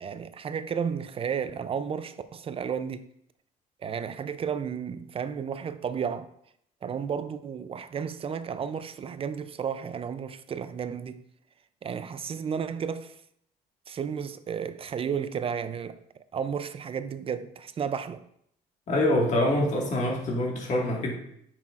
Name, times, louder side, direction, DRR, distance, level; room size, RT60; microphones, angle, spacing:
voice 1, 0.0-3.1 3.8-6.3 6.8-11.2 11.8-13.2 13.9-16.0 16.3-18.2, right 7 dB, 35° right, 0.4 m, -33 dB
voice 2, 18.9-21.1, left 1 dB, 45° left, 1.8 m, -25 dB
8.8 x 5.8 x 2.4 m
cardioid pair, 110°, 17 cm